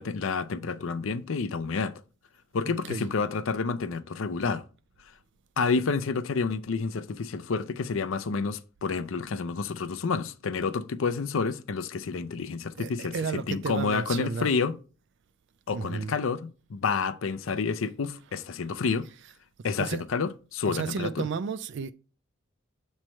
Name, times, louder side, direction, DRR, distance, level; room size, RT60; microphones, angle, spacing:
voice 1, 0.0-1.9 2.5-4.6 5.6-14.8 15.7-19.1 19.6-21.3, left 4 dB, 70° left, 0.5 m, -29 dB
voice 2, 12.8-14.5 15.7-16.1 19.8-20.0 20.7-21.9, right 5 dB, 60° right, 0.3 m, -32 dB
7.4 x 3.2 x 4.3 m
head